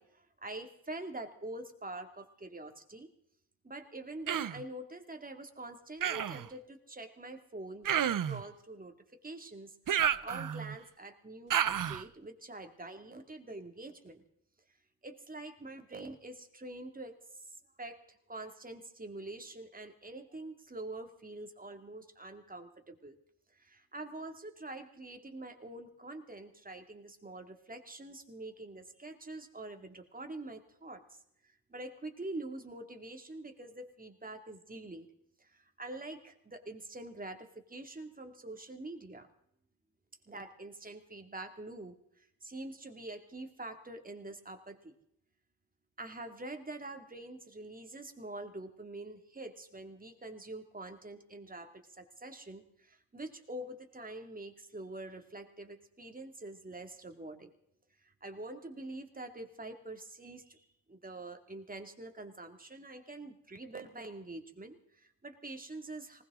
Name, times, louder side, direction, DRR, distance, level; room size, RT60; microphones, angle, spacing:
voice 1, 0.0-3.1 3.6-7.9 8.3-14.2 15.0-23.1 23.5-31.2 31.7-35.1 35.4-39.3 40.3-42.0 42.4-44.9 46.0-57.5 58.0-60.6 60.9-66.2, right 2 dB, 15° right, 5 dB, 2.3 m, -45 dB
Human voice, 4.3-4.6 6.0-6.5 7.8-8.4 9.9-10.8 11.5-12.0, right 9 dB, 40° right, 0.7 m, -31 dB
20.0 x 19.5 x 3.7 m, 0.71 s
cardioid pair, 100°, 48 cm